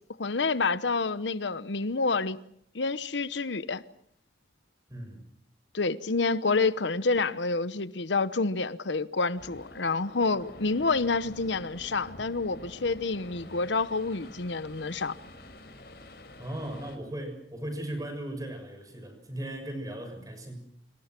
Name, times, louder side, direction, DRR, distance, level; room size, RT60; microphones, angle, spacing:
voice 1, 0.2-2.4 2.7-3.8 5.7-15.2, left 3 dB, 80° left, 1.0 m, -28 dB
voice 2, 4.9-5.2 16.4-20.7, right 1 dB, 20° right, 6.5 m, -37 dB
sound 1, 9.4-17.0, left 1 dB, 55° left, 4.9 m, -48 dB
29.0 x 26.5 x 6.1 m
head